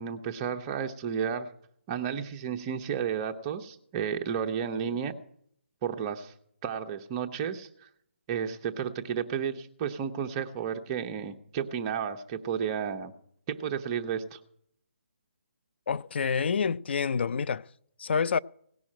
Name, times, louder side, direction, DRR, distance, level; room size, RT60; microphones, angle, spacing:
voice 1, 0.0-1.5 1.9-5.1 5.8-6.3 6.6-7.9 8.3-13.1 13.5-14.4, right 7 dB, 25° right, 0.9 m, -32 dB
voice 2, 15.9-17.6 18.0-18.4, left 6 dB, 60° left, 0.4 m, -27 dB
18.0 x 6.2 x 8.7 m
hypercardioid pair, 155°, 7 cm